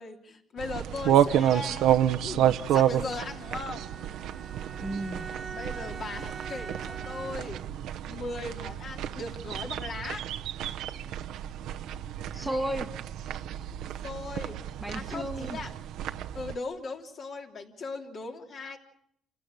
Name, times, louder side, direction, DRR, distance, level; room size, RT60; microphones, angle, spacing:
voice 1, 0.0-2.0 2.2-3.9 5.5-7.6 8.1-10.2 14.0-14.6 14.9-15.7 16.3-18.8, left 3 dB, 50° left, 3 dB, 3.3 m, -38 dB
sound 1, 0.6-16.6, right 11 dB, 85° right, 0.9 m, -30 dB
Bowed string instrument, 3.3-7.7, right 5 dB, 30° right, 1.2 m, -43 dB
voice 2, 4.8-5.3 12.3-12.9 14.8-15.6, right 1 dB, 5° right, 4 dB, 1.4 m, -33 dB
28.0 x 16.0 x 9.1 m, 0.71 s
cardioid pair, 140°, 0 cm